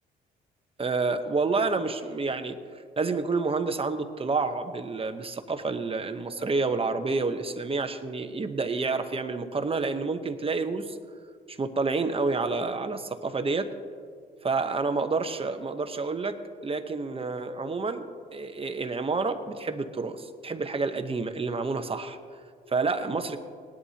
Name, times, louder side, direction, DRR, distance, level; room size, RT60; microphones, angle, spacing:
voice 1, 0.8-2.6 3.0-11.0 11.5-13.7 14.4-16.4 16.6-18.1 18.3-22.2 22.7-23.4, right 4 dB, 30° right, 7 dB, 1.0 m, -29 dB
19.5 x 11.0 x 2.9 m, 2.1 s
cardioid pair, 90°, 20 cm